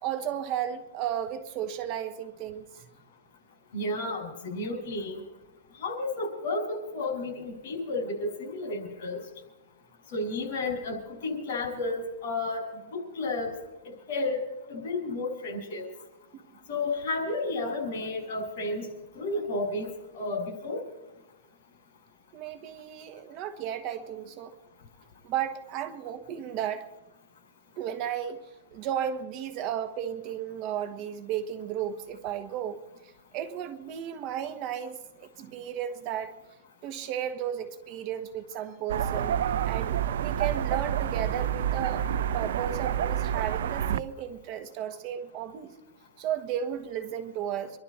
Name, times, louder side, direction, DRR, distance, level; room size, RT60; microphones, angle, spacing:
voice 1, 0.0-2.6 22.3-24.6 25.2-26.9 27.8-28.4 28.7-32.8 33.3-36.3 36.8-39.4 39.6-45.7 46.2-47.8, right 10 dB, 35° right, 10 dB, 1.3 m, -34 dB
voice 2, 3.7-5.2 5.8-9.2 10.1-12.6 12.9-13.5 13.8-14.4 14.7-15.9 16.7-18.9 19.1-20.8, left 2 dB, 50° left, 2 dB, 6.0 m, -32 dB
sound 1, 38.9-44.0, right 9 dB, 70° right, 0.5 m, -28 dB
26.0 x 12.0 x 4.2 m, 1.0 s
hypercardioid pair, 150°, 0 cm